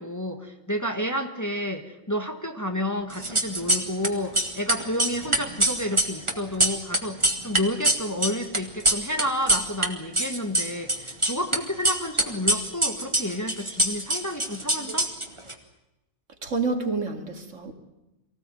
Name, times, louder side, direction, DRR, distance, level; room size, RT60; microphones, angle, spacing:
voice 1, 0.0-7.2 7.4-15.1, left 1 dB, 15° left, 5 dB, 1.7 m, -30 dB
sound 1, 3.1-4.1 4.3-9.9 10.1-11.6 11.8-15.5, right 1 dB, 20° right, 2.2 m, -24 dB
voice 2, 16.4-17.7, right 4 dB, 65° right, 6 dB, 2.6 m, -28 dB
24.0 x 16.5 x 9.3 m, 0.97 s
omnidirectional pair, 1.4 m